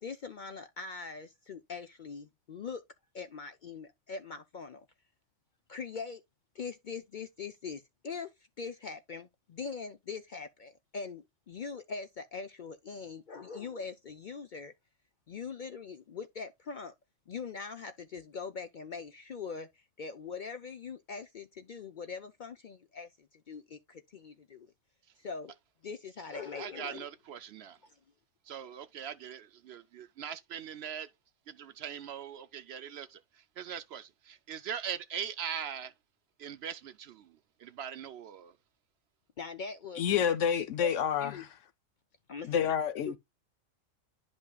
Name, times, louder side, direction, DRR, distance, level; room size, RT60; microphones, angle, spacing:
voice 1, 0.0-2.8 3.1-4.9 5.7-6.2 6.5-14.7 15.3-16.9 17.3-24.7 25.2-25.5 25.8-27.1 27.8-27.9 39.4-40.2 40.8-41.4 42.3-42.8 43.1-43.2, left 5 dB, 55° left, 0.5 m, -42 dB
voice 2, 26.6-27.8 28.5-31.1 31.5-35.9 36.4-38.5, right 8 dB, 65° right, 0.7 m, -41 dB
voice 3, 40.0-41.5 42.5-43.2, left 8 dB, 75° left, 1.0 m, -28 dB
10.5 x 5.3 x 2.3 m
omnidirectional pair, 1.3 m